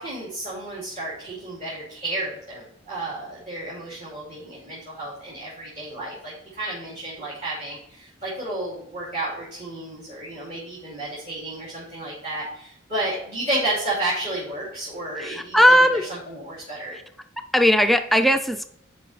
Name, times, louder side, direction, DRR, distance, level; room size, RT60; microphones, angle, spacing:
voice 1, 0.0-15.8 16.1-17.0, right 1 dB, 35° right, -8 dB, 2.5 m, -32 dB
voice 2, 15.2-16.1 17.4-18.7, equal, ahead, 7 dB, 0.3 m, -18 dB
10.0 x 5.1 x 3.2 m, 0.68 s
head